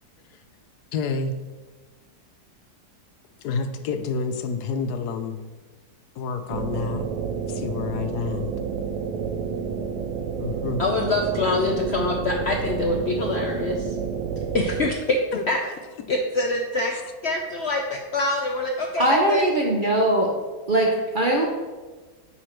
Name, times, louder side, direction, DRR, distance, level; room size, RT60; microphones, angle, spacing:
voice 1, 0.9-1.3 3.4-5.4 6.2-7.0 7.5-8.6 10.4-10.8 15.3-15.4, left 5 dB, 80° left, 9 dB, 1.2 m, -28 dB
sound 1, 6.5-14.9, right 6 dB, 80° right, 1.2 m, -29 dB
voice 2, 10.8-14.0 14.5-15.2 15.5-15.6 16.1-16.9 17.2-19.4, left 2 dB, 65° left, 2 dB, 0.7 m, -25 dB
voice 3, 19.0-20.3 20.7-21.5, right 1 dB, 45° right, 0 dB, 0.6 m, -20 dB
8.9 x 4.3 x 4.5 m, 1.3 s
omnidirectional pair, 1.7 m